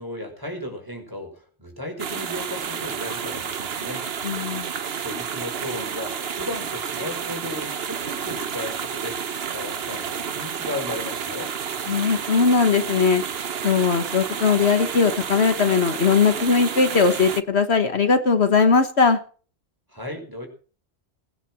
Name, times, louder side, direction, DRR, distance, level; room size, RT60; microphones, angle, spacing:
voice 1, 0.0-4.0 4.9-11.5 19.9-20.5, left 1 dB, 20° right, 3 dB, 5.4 m, -35 dB
sound 1, 2.0-17.4, right 7 dB, 60° right, 1.2 m, -30 dB
voice 2, 4.2-4.7 11.9-13.2 13.6-19.2, left 5 dB, 65° left, 9 dB, 1.7 m, -19 dB
19.5 x 10.0 x 6.2 m, 0.40 s
omnidirectional pair, 1.2 m